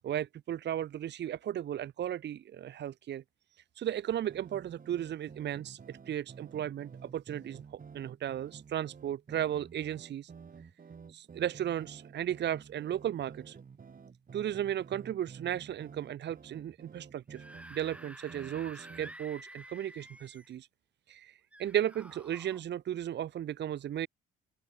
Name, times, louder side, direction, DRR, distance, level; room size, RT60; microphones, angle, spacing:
voice 1, 0.0-3.2 3.8-10.3 11.1-13.6 14.3-17.4 17.7-20.7 21.1-24.1, right 11 dB, 60° right, 0.9 m, -35 dB
sound 1, 4.2-19.3, right 6 dB, 45° right, 3.5 m, -51 dB
Screaming / Screech, 17.2-20.6 21.5-22.6, right 1 dB, 5° right, 2.6 m, -50 dB
open air
supercardioid pair, 55°, 20 cm